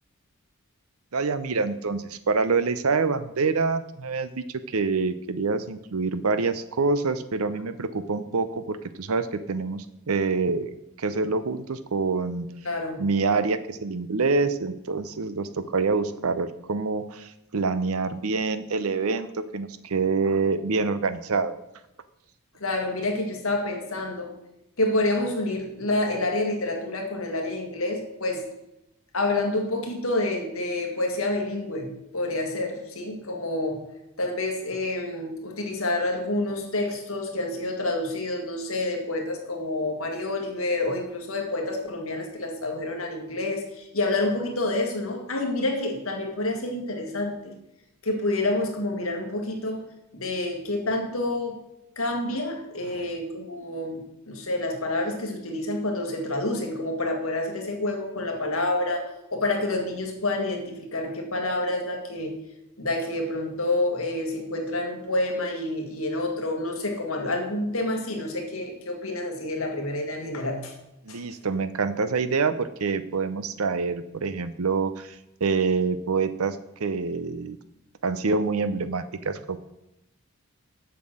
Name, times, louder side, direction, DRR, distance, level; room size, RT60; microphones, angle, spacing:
voice 1, 1.1-10.7 11.0-12.5 13.0-21.6 52.9-53.1 71.0-77.6 78.0-79.6, right 4 dB, 80° right, 12 dB, 0.7 m, -26 dB
voice 2, 12.6-13.0 22.6-24.3 24.8-28.5 29.1-33.8 34.2-47.5 48.0-49.9 50.1-51.6 52.0-62.4 62.8-70.7 71.1-71.2, left 2 dB, 70° left, 3 dB, 1.9 m, -28 dB
7.5 x 5.9 x 7.6 m, 0.88 s
head